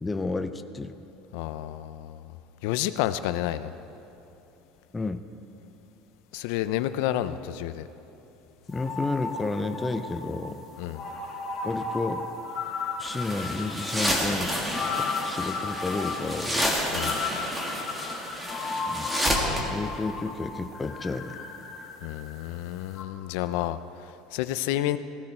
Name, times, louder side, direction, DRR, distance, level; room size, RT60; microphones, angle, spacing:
voice 1, 0.0-0.9 4.9-5.2 8.7-10.7 11.6-12.2 13.0-14.5 15.0-16.7 18.9-19.1 19.7-21.4, left 3 dB, 10° left, 8 dB, 0.4 m, -31 dB
voice 2, 1.3-2.3 2.6-3.7 6.3-7.9 10.8-11.0 16.9-17.2 22.0-25.0, left 13 dB, 70° left, 12 dB, 0.5 m, -30 dB
sound 1, 8.7-22.6 22.9-23.0, left 4 dB, 30° left, 1.4 m, -35 dB
sound 2, 13.0-19.6, equal, 10° right, 1.5 m, -30 dB
16.0 x 14.5 x 4.4 m, 2.9 s
cardioid pair, 165°, 0 cm